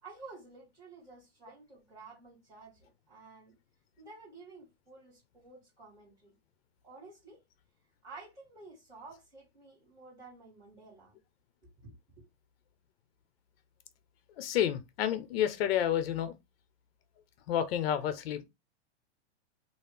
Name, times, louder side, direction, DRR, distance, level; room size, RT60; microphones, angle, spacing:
voice 1, 0.0-3.5 4.0-6.4 6.8-7.4 8.0-11.2 11.8-12.2, right 3 dB, 10° right, 2.1 m, -52 dB
voice 2, 14.4-16.3 17.5-18.4, left 10 dB, 60° left, 0.7 m, -30 dB
3.1 x 2.5 x 3.3 m
supercardioid pair, 160°, 35 cm